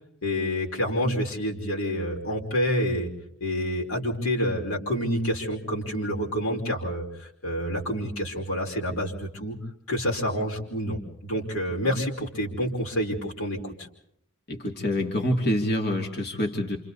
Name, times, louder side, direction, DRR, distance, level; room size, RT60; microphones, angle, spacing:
voice 1, 0.2-3.1 3.4-9.6 9.9-13.9, equal, 70° left, 1 dB, 5.3 m, -28 dB
voice 2, 14.5-16.8, left 1 dB, 50° left, 1 dB, 2.9 m, -26 dB
30.0 x 28.0 x 4.2 m, 0.73 s
head